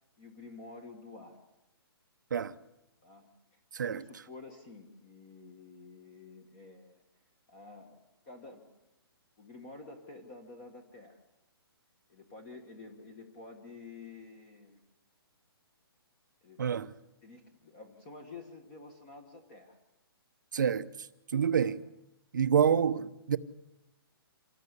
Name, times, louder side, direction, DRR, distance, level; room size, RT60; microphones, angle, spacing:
voice 1, 0.2-1.4 3.0-7.0 7.5-8.0 8.2-8.6 9.4-11.2 12.1-14.8 16.4-16.6 17.2-19.8 21.6-21.8, left 3 dB, 20° left, 1.5 m, -50 dB
voice 2, 3.7-4.0 16.6-16.9 20.5-20.9 21.3-21.8 22.3-23.4, right 7 dB, 50° right, 0.9 m, -27 dB
27.0 x 18.5 x 8.2 m
hypercardioid pair, 180°, 13 cm